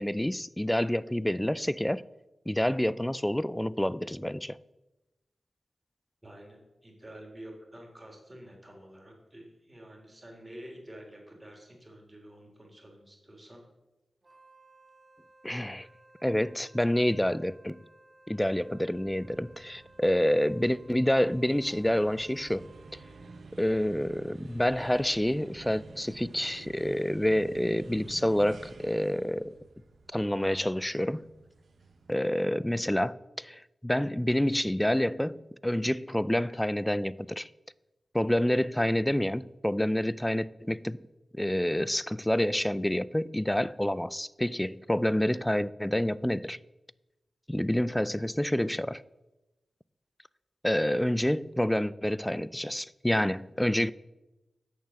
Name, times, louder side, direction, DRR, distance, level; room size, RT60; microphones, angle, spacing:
voice 1, 0.0-2.0 2.5-4.6 15.4-15.9 16.2-17.8 18.3-23.0 23.6-29.6 30.1-31.3 32.1-37.5 38.1-41.0 41.3-46.6 47.5-49.0 50.6-53.9, left 1 dB, 10° left, 0.4 m, -28 dB
voice 2, 6.2-13.6, right 1 dB, 20° right, 3.4 m, -49 dB
Wind instrument woodwind instrument, 14.2-23.5, right 1 dB, 40° right, 1.7 m, -58 dB
sound 1, 18.5-32.9, right 3 dB, 75° right, 1.1 m, -51 dB
8.8 x 6.7 x 6.3 m
cardioid pair, 40°, 0 cm